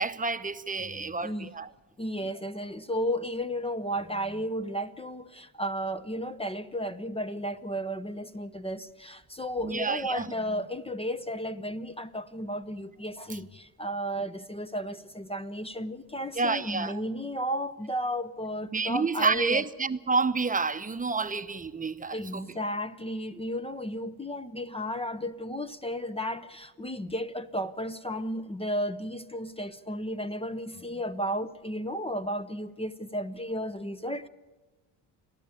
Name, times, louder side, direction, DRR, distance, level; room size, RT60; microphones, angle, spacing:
voice 1, 0.0-1.7 9.6-10.3 16.3-17.0 18.7-22.4 23.3-23.4, right 4 dB, 15° right, 0.9 m, -29 dB
voice 2, 0.8-1.5 2.0-19.6 22.1-34.3, equal, 10° left, 0.7 m, -33 dB
29.0 x 11.0 x 8.5 m
supercardioid pair, 80°, 49 cm